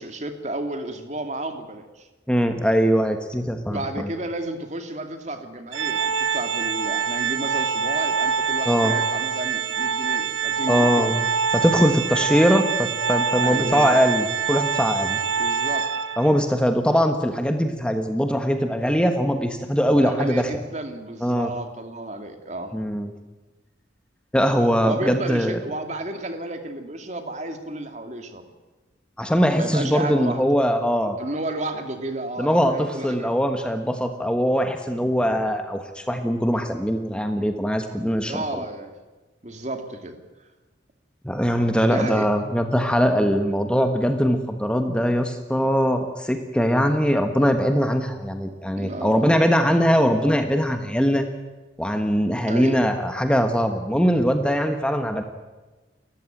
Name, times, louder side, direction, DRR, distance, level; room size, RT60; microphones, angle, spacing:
voice 1, 0.0-2.1 3.7-11.1 13.4-14.0 15.3-15.9 19.9-22.7 24.8-28.4 29.5-30.4 31.2-33.4 38.3-38.9 39.4-40.2 41.8-42.3 48.8-49.2 52.5-52.8, right 2 dB, 40° right, 6 dB, 2.3 m, -32 dB
voice 2, 2.3-4.1 8.7-8.9 10.7-11.3 11.5-15.2 16.2-20.5 21.2-21.5 22.7-23.1 24.3-25.6 29.2-31.2 32.4-38.6 41.2-51.3 51.8-55.2, equal, 5° left, 6 dB, 1.3 m, -21 dB
Organ, 5.7-16.4, right 6 dB, 85° right, 1.1 m, -25 dB
30.0 x 14.5 x 9.1 m, 1.2 s
head